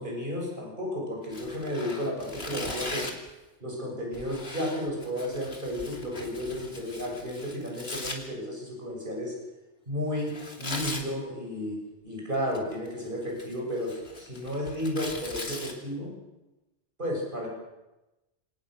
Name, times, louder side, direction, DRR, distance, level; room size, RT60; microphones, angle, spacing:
voice 1, 0.0-3.1 3.6-9.3 9.9-11.8 12.0-16.1 17.0-17.5, equal, 45° right, -1 dB, 7.4 m, -33 dB
Tearing, 1.3-3.3 4.1-8.2 10.3-11.1 12.3-12.9 13.3-15.7, left 2 dB, 60° left, 3.0 m, -39 dB
26.5 x 18.5 x 6.6 m, 1.0 s
omnidirectional pair, 1.2 m